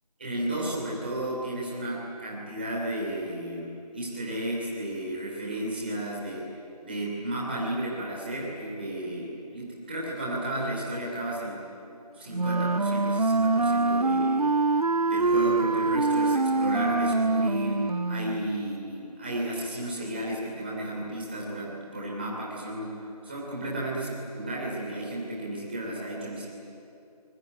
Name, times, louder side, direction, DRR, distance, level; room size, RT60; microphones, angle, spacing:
voice 1, 0.2-6.4 6.8-11.6 12.1-14.5 15.1-26.5, right 1 dB, 15° right, -4 dB, 3.2 m, -33 dB
Wind instrument woodwind instrument, 12.3-18.5, right 3 dB, 65° right, 0.7 m, -24 dB
27.0 x 21.0 x 9.5 m, 2.8 s
figure-of-eight pair, 175°, 20 cm